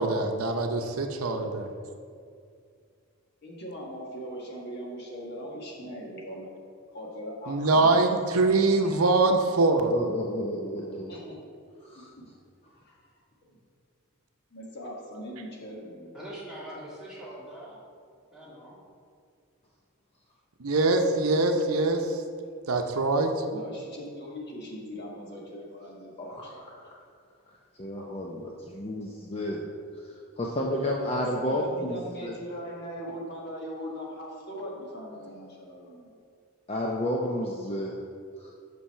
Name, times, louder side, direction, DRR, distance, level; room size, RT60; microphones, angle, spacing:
voice 1, 0.0-1.7 7.5-9.9 20.6-22.2 22.7-23.4, right 3 dB, 80° right, 5 dB, 0.7 m, -23 dB
voice 2, 3.4-6.5 6.9-8.0 10.9-11.4 11.9-12.2 12.7-13.0 13.5-13.6 14.5-16.1 23.4-26.9 31.1-36.1, equal, 50° left, -2 dB, 1.4 m, -40 dB
voice 3, 9.9-11.2 11.9-12.1 26.2-26.7 27.8-29.6 30.0-32.3 36.7-37.9 38.4-38.5, left 1 dB, 30° left, -2 dB, 0.5 m, -31 dB
voice 4, 16.1-17.8 18.3-18.8, right 1 dB, 5° right, -8 dB, 1.9 m, -42 dB
6.1 x 5.7 x 5.6 m, 2.3 s
head